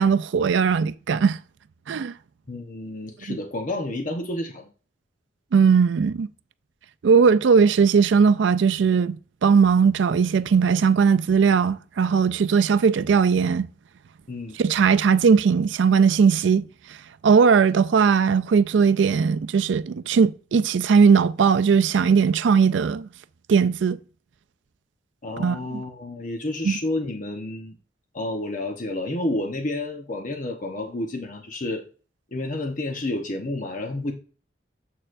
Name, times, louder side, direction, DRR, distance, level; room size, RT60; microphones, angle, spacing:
voice 1, 0.0-1.4 1.9-2.1 3.3-3.4 5.5-6.3 7.0-13.7 14.6-16.6 17.2-23.1 23.5-24.0 25.4-25.6 26.6-26.8, right 6 dB, 75° right, 0.4 m, -19 dB
voice 2, 2.5-4.7 14.3-14.6 25.2-27.8 28.1-31.8 32.3-34.1, left 2 dB, 45° left, 0.9 m, -30 dB
7.6 x 6.4 x 2.5 m
head